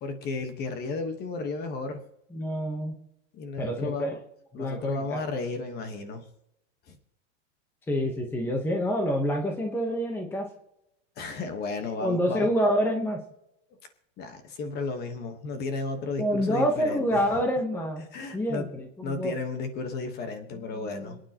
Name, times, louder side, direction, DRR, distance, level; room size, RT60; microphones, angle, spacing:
voice 1, 0.0-2.0 3.3-4.2 4.5-6.2 6.9-7.0 11.2-12.5 14.2-17.2 18.1-18.7 19.0-21.2, left 3 dB, 25° left, 7 dB, 1.3 m, -33 dB
voice 2, 2.3-2.9 3.6-4.1 4.5-5.2 7.9-10.5 12.0-13.2 16.2-18.0 18.3-19.3 20.5-21.2, equal, 5° left, 2 dB, 1.0 m, -27 dB
26.5 x 9.2 x 2.9 m, 0.83 s
supercardioid pair, 170°, 37 cm